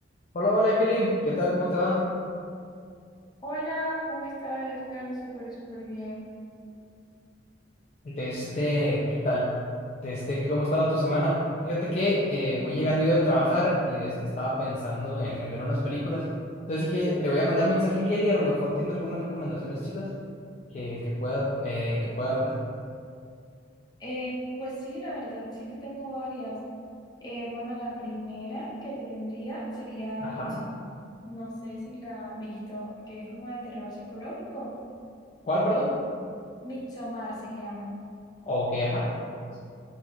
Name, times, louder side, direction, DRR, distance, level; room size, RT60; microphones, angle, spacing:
voice 1, 0.3-2.0 8.0-9.5 10.0-11.4 11.6-16.2 16.7-20.1 20.7-22.5 30.2-30.6 35.5-35.9 38.5-39.1, left 1 dB, 40° left, -6 dB, 0.4 m, -26 dB
voice 2, 3.4-6.3 24.0-26.6 27.2-30.8 31.2-34.7 36.6-37.9, equal, 20° left, -7 dB, 0.8 m, -36 dB
3.9 x 2.3 x 3.0 m, 2.3 s
head